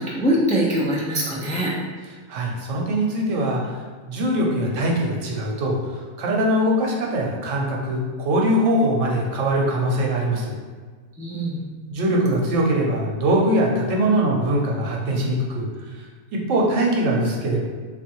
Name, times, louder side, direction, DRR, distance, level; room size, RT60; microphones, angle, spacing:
voice 1, 0.0-1.7 11.2-11.6, right 1 dB, 10° left, -4 dB, 0.3 m, -23 dB
voice 2, 2.3-3.6 4.1-10.5 11.9-16.1 16.3-17.6, right 1 dB, 85° right, -1 dB, 1.1 m, -22 dB
3.7 x 2.5 x 4.4 m, 1.5 s
omnidirectional pair, 1.3 m